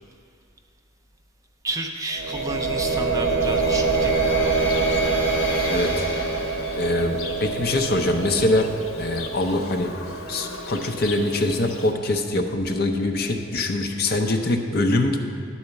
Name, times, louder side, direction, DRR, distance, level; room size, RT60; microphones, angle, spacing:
voice 1, 1.6-4.7, right 2 dB, 15° right, 3 dB, 0.4 m, -31 dB
sound 1, 2.1-12.0, right 4 dB, 65° right, 0.6 m, -26 dB
sound 2, 2.3-7.3, left 1 dB, 10° left, 2.6 m, -33 dB
Livestock farm animals working animals, 3.4-11.9, left 4 dB, 85° left, 0.9 m, -40 dB
voice 2, 5.7-6.0 6.8-8.7 9.0-9.9 10.3-15.2, left 2 dB, 45° left, 4 dB, 0.6 m, -23 dB
10.5 x 4.2 x 6.9 m, 2.2 s
head